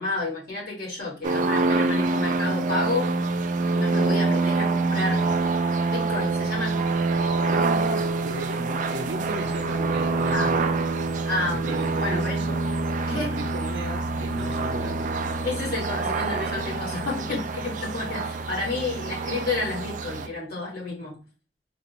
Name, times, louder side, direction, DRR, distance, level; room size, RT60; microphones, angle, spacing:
voice 1, 0.0-3.1 3.7-5.3 5.9-6.8 10.3-10.5 11.3-12.4 13.1-13.3 15.4-21.2, left 3 dB, 55° left, 1.9 m, -30 dB
sound 1, 1.2-20.3, right 3 dB, 45° right, 0.4 m, -26 dB
voice 2, 7.5-10.8 11.4-12.7 13.0-15.3, right 2 dB, 90° right, 0.6 m, -35 dB
3.8 x 2.6 x 2.9 m
head